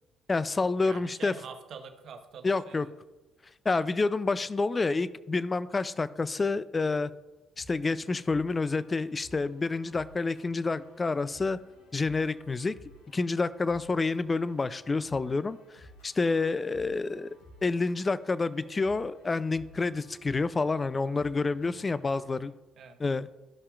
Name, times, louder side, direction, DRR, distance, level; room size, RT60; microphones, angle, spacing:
voice 1, 0.3-1.3 2.4-2.9 3.7-7.1 7.6-11.6 11.9-12.8 13.1-17.4 17.6-22.5 23.0-23.3, left 3 dB, 30° left, 16 dB, 0.4 m, -28 dB
voice 2, 0.8-2.9 21.6-21.9 22.8-23.0, right 6 dB, 60° right, 6 dB, 1.0 m, -46 dB
sound 1, 7.5-22.5, left 1 dB, 80° left, 2.5 m, -56 dB
14.0 x 5.6 x 2.4 m, 1.1 s
hypercardioid pair, 60°, 0 cm